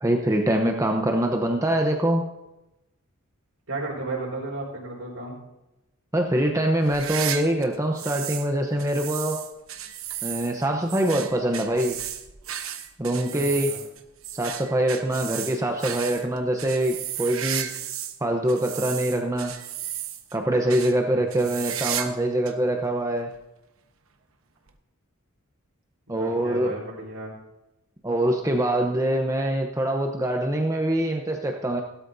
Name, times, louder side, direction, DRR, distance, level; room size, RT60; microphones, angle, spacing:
voice 1, 0.0-2.2 6.1-9.4 10.2-12.0 13.0-13.7 14.3-17.7 18.2-19.5 20.3-23.3 26.1-26.7 28.0-31.8, right 1 dB, 15° right, 3 dB, 0.9 m, -24 dB
voice 2, 3.7-5.4 13.1-13.8 20.9-21.5 26.1-27.3, right 2 dB, 85° right, -9 dB, 4.2 m, -34 dB
sound 1, 6.8-8.5 8.8-18.2 18.5-20.4 20.7-20.9 21.3-22.2 22.5-22.6 23.3-23.4 24.7-24.8, right 10 dB, 70° right, 1.1 m, -34 dB
16.5 x 12.5 x 2.7 m, 0.95 s
head